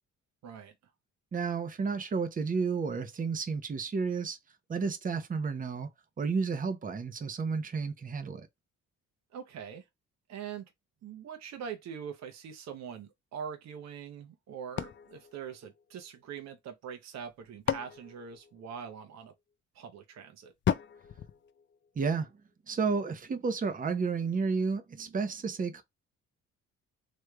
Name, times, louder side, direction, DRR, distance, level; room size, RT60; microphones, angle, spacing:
voice 1, 0.4-0.7 9.3-9.9 10.3-10.7 11.0-19.3 19.7-20.5, right 7 dB, 60° right, 0.8 m, -43 dB
voice 2, 1.3-4.4 4.7-5.9 6.2-8.5 22.0-22.3 22.7-25.8, right 5 dB, 25° right, 0.7 m, -31 dB
sound 1, 14.8-16.3 17.2-19.1 20.6-22.3, left 9 dB, 40° left, 0.4 m, -36 dB
3.3 x 3.1 x 2.3 m
cardioid pair, 90°, 30 cm